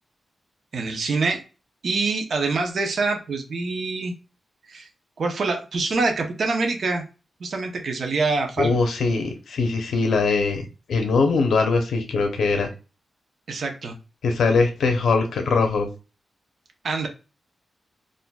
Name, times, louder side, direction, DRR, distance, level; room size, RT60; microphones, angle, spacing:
voice 1, 0.7-1.4 1.8-4.1 4.7-4.9 5.2-7.0 7.4-8.7 13.5-14.0 16.8-17.1, right 3 dB, 60° right, 4 dB, 0.7 m, -25 dB
voice 2, 8.6-10.6 10.9-12.7 14.2-15.9, left 4 dB, 90° left, 4 dB, 0.6 m, -21 dB
4.2 x 2.6 x 2.2 m, 0.32 s
wide cardioid pair, 135°, 0 cm